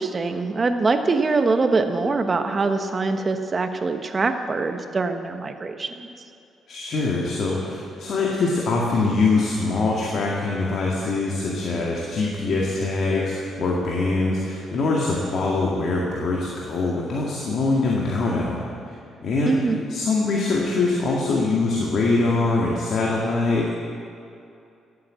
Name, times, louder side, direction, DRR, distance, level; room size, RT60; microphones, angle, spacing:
voice 1, 0.0-6.1 19.4-19.8, right 3 dB, 35° right, 7 dB, 1.2 m, -23 dB
voice 2, 6.7-19.0 19.2-19.6 19.9-23.7, left 3 dB, 60° left, -3 dB, 2.0 m, -23 dB
14.5 x 8.6 x 7.6 m, 2.6 s
cardioid pair, 90°, 0 cm